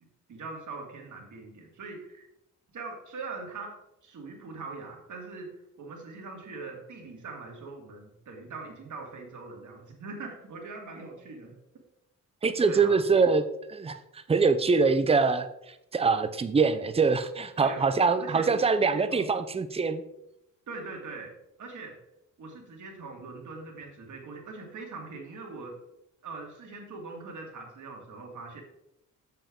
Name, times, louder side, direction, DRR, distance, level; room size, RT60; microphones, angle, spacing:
voice 1, 0.3-2.3 2.7-3.7 4.0-11.5 12.6-13.0 17.6-17.8 18.2-19.3 20.7-21.3 21.6-21.9 22.4-25.8 26.2-28.6, right 3 dB, 65° right, 1 dB, 2.2 m, -42 dB
voice 2, 12.4-15.5 15.9-20.0, right 4 dB, 20° right, 10 dB, 0.5 m, -24 dB
7.8 x 6.9 x 3.7 m, 0.83 s
wide cardioid pair, 130°, 32 cm